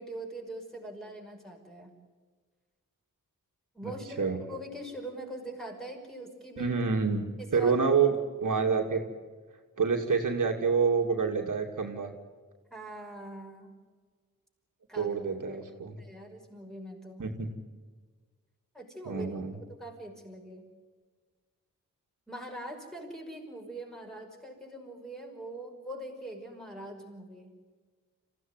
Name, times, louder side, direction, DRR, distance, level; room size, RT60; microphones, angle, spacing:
voice 1, 0.0-1.9 3.7-6.7 7.4-7.8 12.7-13.7 14.9-15.1 15.5-15.6 16.0-17.3 18.7-20.7 22.3-27.5, right 1 dB, ahead, 1 dB, 5.7 m, -42 dB
voice 2, 6.6-7.2 7.5-9.0 9.8-12.1 14.9-16.0 17.2-17.5 19.1-19.5, right 5 dB, 65° right, 2 dB, 2.6 m, -27 dB
27.0 x 15.5 x 9.5 m, 1.5 s
wide cardioid pair, 100°, 33 cm